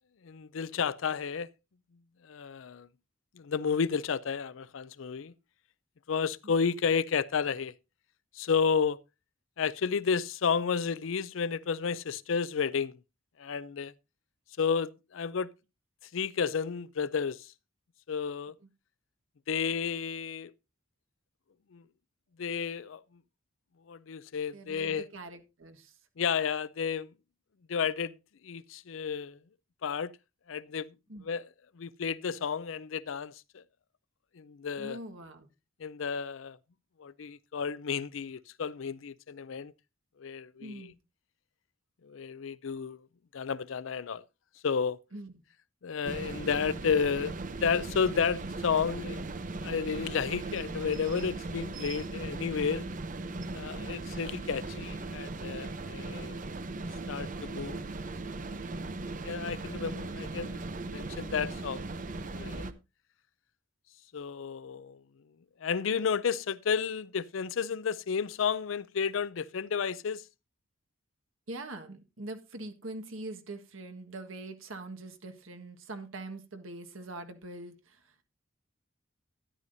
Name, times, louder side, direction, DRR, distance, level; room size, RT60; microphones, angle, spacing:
voice 1, 0.2-1.5 2.3-2.9 3.4-5.3 6.1-7.7 8.3-9.0 9.6-13.0 13.4-13.9 14.6-15.5 16.1-17.5 18.1-18.5 19.5-20.5 21.7-21.8 22.4-23.0 23.9-25.1 26.2-27.1 27.7-28.2 28.4-29.4 29.8-30.1 30.5-30.9 31.2-31.5 31.8-33.6 34.4-35.0 35.8-36.6 37.0-39.7 40.2-40.9 42.0-43.0 43.3-44.2 44.6-45.0 45.8-47.3 47.6-49.2 49.6-52.9 53.5-56.4 57.1-57.8 59.2-61.8 62.3-62.7 64.1-65.0 65.6-70.2, left 6 dB, 75° left, 0.5 m, -32 dB
voice 2, 24.5-25.9 31.1-31.2 34.8-35.5 40.6-40.9 45.1-45.4 53.8-54.0 71.5-78.2, right 2 dB, 80° right, 1.5 m, -43 dB
sound 1, 46.0-62.7, right 2 dB, 40° right, 0.7 m, -38 dB
12.5 x 10.5 x 2.6 m
head